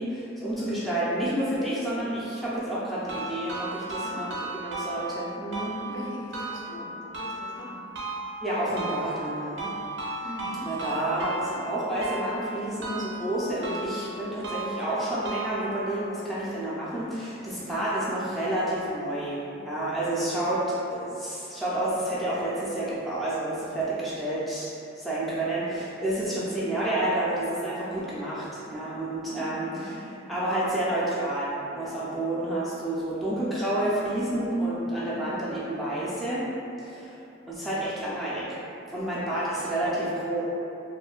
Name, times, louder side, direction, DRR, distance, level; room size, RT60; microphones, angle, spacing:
voice 1, 0.0-6.1 8.4-9.7 10.6-20.6 20.9-36.4 36.8-37.2 37.5-38.6 38.9-40.4, right 1 dB, ahead, -10 dB, 0.3 m, -30 dB
voice 2, 0.6-1.0 4.0-4.3 5.9-7.8 10.2-10.7 17.6-17.9 26.2-26.6 29.3-30.0 34.9-35.4, left 1 dB, 80° left, -5 dB, 0.5 m, -42 dB
sound 1, 3.1-16.1, right 2 dB, 65° right, 0.5 m, -36 dB
2.6 x 2.1 x 2.3 m, 2.8 s
head